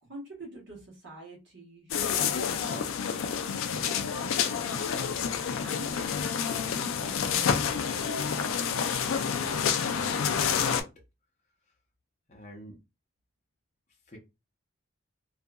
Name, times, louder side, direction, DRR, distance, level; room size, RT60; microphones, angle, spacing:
voice 1, 0.0-2.9 3.8-5.0 5.6-7.8, right 2 dB, 60° right, 1.2 m, -47 dB
sound 1, 1.9-10.8, left 7 dB, 75° left, 0.4 m, -29 dB
voice 2, 9.6-10.9 12.3-12.8 14.1-14.2, equal, 35° left, 0.7 m, -49 dB
2.7 x 2.4 x 2.2 m
head